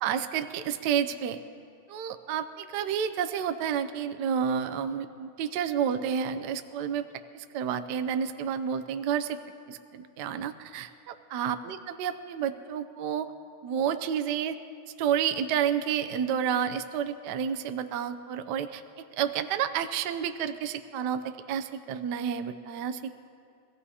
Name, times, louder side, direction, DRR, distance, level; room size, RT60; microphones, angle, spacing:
voice 1, 0.0-1.4 1.9-7.1 7.3-9.4 9.7-13.3 13.6-14.6 15.0-23.1, right 8 dB, 75° right, 9 dB, 1.0 m, -30 dB
25.0 x 15.5 x 2.8 m, 2.4 s
omnidirectional pair, 2.4 m